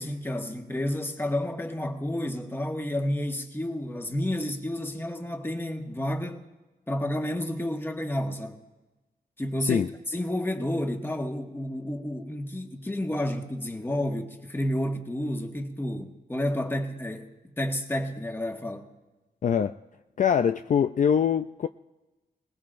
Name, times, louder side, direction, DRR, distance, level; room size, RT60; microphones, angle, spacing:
voice 1, 0.0-6.4 6.9-8.6 9.4-18.9, left 1 dB, 15° left, 1.5 m, -30 dB
voice 2, 19.4-19.8 20.2-21.7, left 8 dB, 50° left, 0.4 m, -23 dB
26.0 x 19.0 x 2.6 m
wide cardioid pair, 95°, 16 cm